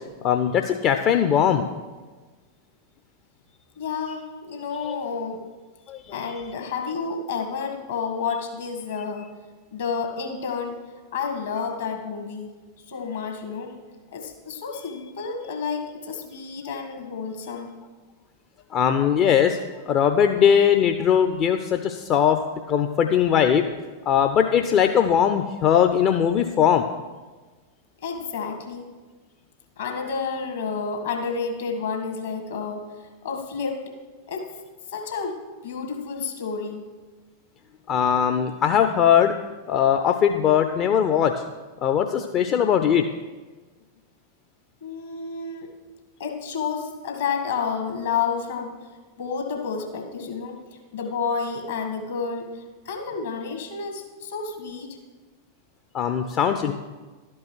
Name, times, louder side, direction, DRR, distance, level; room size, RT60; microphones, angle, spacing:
voice 1, 0.2-1.6 4.8-5.0 5.9-6.2 18.7-19.6 19.9-22.4 22.7-23.6 24.1-26.8 37.9-39.3 39.7-41.3 41.8-43.0 55.9-56.7, left 8 dB, 35° left, 6 dB, 0.5 m, -20 dB
voice 2, 3.8-5.4 6.1-9.3 9.7-10.8 11.1-12.5 12.8-13.7 14.1-17.7 28.0-28.9 29.8-32.8 33.2-33.8 34.3-34.5 34.9-36.9 44.8-45.7 46.2-48.8 49.2-50.6 50.9-55.0, left 5 dB, 65° left, 3 dB, 1.7 m, -30 dB
12.0 x 5.4 x 6.1 m, 1.3 s
figure-of-eight pair, 90°, 0 cm